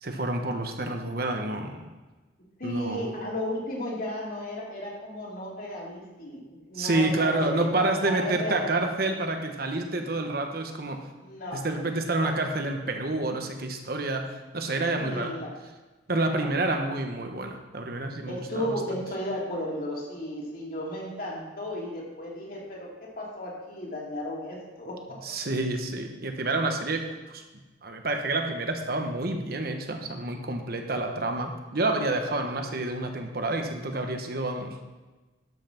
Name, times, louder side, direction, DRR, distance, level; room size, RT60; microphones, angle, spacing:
voice 1, 0.0-1.9 2.6-3.1 6.7-11.0 11.5-15.3 16.1-19.0 25.2-27.4 27.8-34.8, right 2 dB, 55° right, 4 dB, 1.2 m, -29 dB
voice 2, 2.6-8.7 11.2-11.7 12.1-12.4 15.0-15.6 16.3-16.5 18.2-25.2, left 1 dB, 50° left, -3 dB, 2.8 m, -34 dB
12.5 x 5.8 x 5.9 m, 1.2 s
head